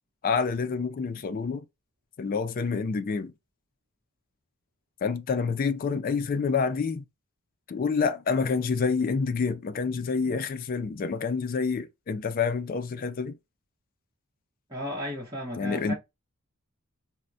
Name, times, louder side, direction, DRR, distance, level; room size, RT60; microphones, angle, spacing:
voice 1, 0.2-1.6 2.2-3.3 5.0-7.0 7.7-13.4 15.6-15.9, left 5 dB, 40° left, 0.3 m, -28 dB
voice 2, 14.7-15.9, left 1 dB, 15° right, 0.9 m, -34 dB
4.3 x 2.1 x 2.5 m
head